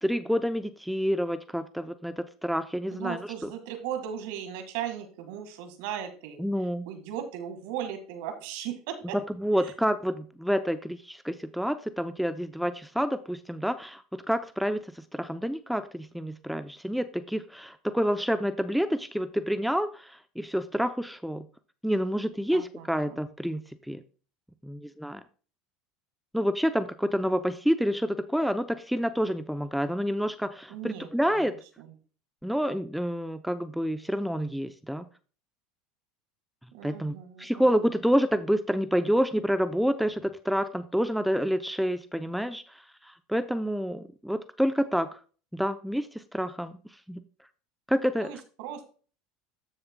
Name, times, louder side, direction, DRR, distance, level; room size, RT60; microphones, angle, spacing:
voice 1, 0.0-3.5 6.4-6.9 9.4-21.5 21.8-24.0 24.6-25.2 26.3-31.5 32.4-35.1 36.8-45.2 45.5-46.8 47.1-47.2 47.9-48.3, equal, ahead, 11 dB, 0.5 m, -28 dB
voice 2, 2.9-6.4 6.8-9.2 9.5-9.7 22.5-23.2 30.7-31.5 31.8-31.9 36.7-37.7 48.2-48.8, right 9 dB, 70° right, 7 dB, 1.7 m, -37 dB
13.0 x 6.4 x 2.2 m, 0.39 s
hypercardioid pair, 90°, 0 cm